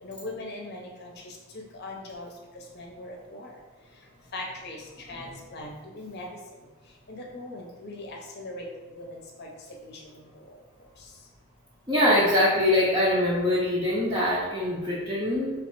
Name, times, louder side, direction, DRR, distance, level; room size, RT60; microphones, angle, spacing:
voice 1, 0.0-2.3 2.7-3.5 4.3-4.8 5.1-6.3 7.1-8.7 9.0-9.5 9.8-10.0, left 2 dB, 45° left, 0 dB, 0.7 m, -40 dB
voice 2, 11.9-15.6, left 1 dB, 15° right, -8 dB, 0.6 m, -23 dB
3.1 x 3.1 x 4.6 m, 1.2 s
head